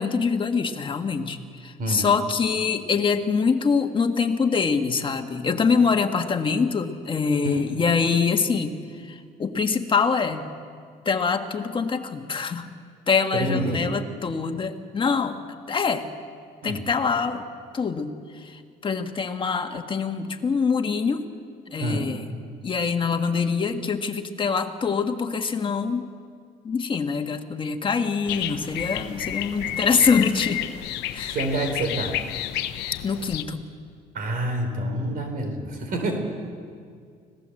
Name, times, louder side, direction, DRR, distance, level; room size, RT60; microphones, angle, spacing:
voice 1, 0.0-10.5 11.0-12.7 13.1-15.4 15.7-16.1 16.6-17.5 17.7-21.2 21.7-22.3 22.6-26.1 26.6-30.7 31.1-31.4 33.0-33.6, left 5 dB, 30° left, 5 dB, 1.7 m, -24 dB
voice 2, 13.3-13.8 16.6-16.8 21.8-22.1 31.3-32.2 34.1-36.2, right 1 dB, 55° right, 5 dB, 3.7 m, -27 dB
sound 1, 28.2-33.4, left 12 dB, 90° left, 1.1 m, -31 dB
25.5 x 18.0 x 7.9 m, 2.1 s
cardioid pair, 110°, 17 cm